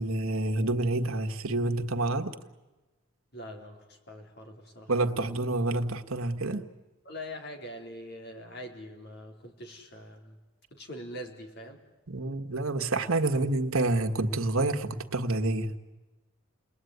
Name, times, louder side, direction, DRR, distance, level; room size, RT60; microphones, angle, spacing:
voice 1, 0.0-2.3 4.9-6.7 12.1-15.8, right 2 dB, 85° right, 5 dB, 1.7 m, -28 dB
voice 2, 3.3-4.9 7.1-10.4 10.7-11.8 13.2-13.4, equal, 50° left, 4 dB, 3.9 m, -43 dB
30.0 x 20.5 x 9.5 m, 1.1 s
head